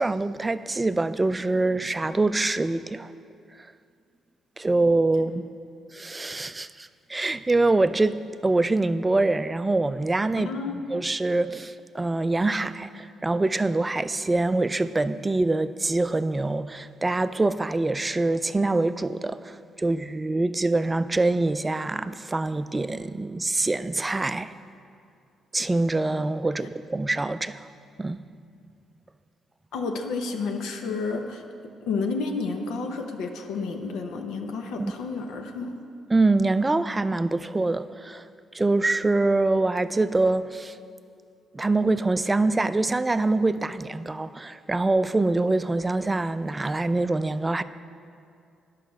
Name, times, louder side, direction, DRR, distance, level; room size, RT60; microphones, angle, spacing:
voice 1, 0.0-3.1 4.6-5.5 5.9-8.2 8.4-10.5 10.9-24.5 25.5-27.7 28.0-28.2 34.8-34.9 36.1-38.2 38.5-40.8 41.5-47.6, right 2 dB, 20° right, 0.3 m, -24 dB
voice 2, 10.4-10.8 26.6-26.7 29.7-31.4 31.8-35.8, left 4 dB, 90° left, 0.7 m, -31 dB
9.9 x 5.7 x 6.4 m
cardioid pair, 90°, 0 cm